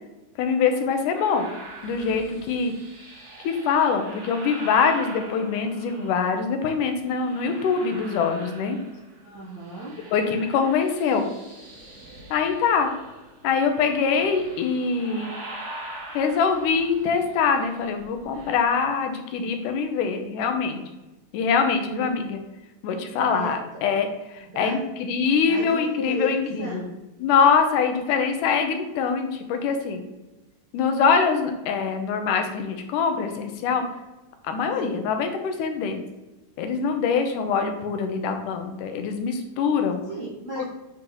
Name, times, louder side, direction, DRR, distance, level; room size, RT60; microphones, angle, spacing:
voice 1, 0.4-1.5 1.8-2.7 3.4-8.8 10.1-11.3 12.3-12.9 13.4-15.3 16.1-20.8 21.3-22.4 22.8-24.1 24.3-26.9 27.2-30.1 30.7-33.8 34.4-36.1 36.6-40.0 40.6-40.7, left 5 dB, 90° left, 6 dB, 2.3 m, -24 dB
sound 1, 1.1-6.5 7.0-9.2 9.5-18.6, right 1 dB, 40° right, 1.0 m, -43 dB
voice 2, 9.2-9.9 21.8-22.0 23.3-23.6 24.5-24.9 25.5-26.9 34.8-35.0 40.1-40.6, right 2 dB, 60° right, -7 dB, 1.0 m, -34 dB
8.5 x 3.0 x 3.8 m, 1.1 s
omnidirectional pair, 3.6 m